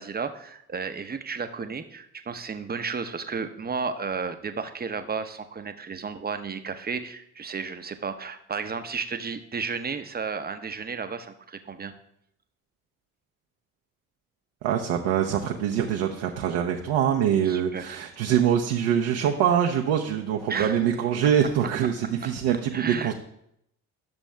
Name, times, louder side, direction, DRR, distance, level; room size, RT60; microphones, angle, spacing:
voice 1, 0.0-11.9 17.4-18.0 20.5-20.8 22.7-23.1, right 5 dB, 20° right, 8 dB, 0.8 m, -33 dB
voice 2, 14.6-23.1, right 9 dB, 65° right, 2 dB, 0.8 m, -24 dB
12.0 x 7.0 x 2.2 m, 0.75 s
hypercardioid pair, 50°, 43 cm